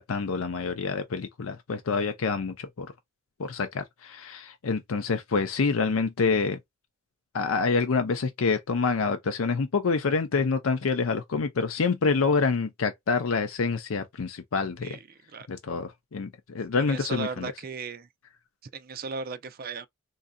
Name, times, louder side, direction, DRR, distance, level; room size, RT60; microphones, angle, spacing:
voice 1, 0.0-2.9 3.4-6.6 7.3-15.0 15.5-17.5, left 4 dB, 90° left, 0.6 m, -27 dB
voice 2, 16.7-18.1 18.7-19.9, right 4 dB, 45° right, 0.5 m, -36 dB
3.8 x 2.6 x 2.2 m
head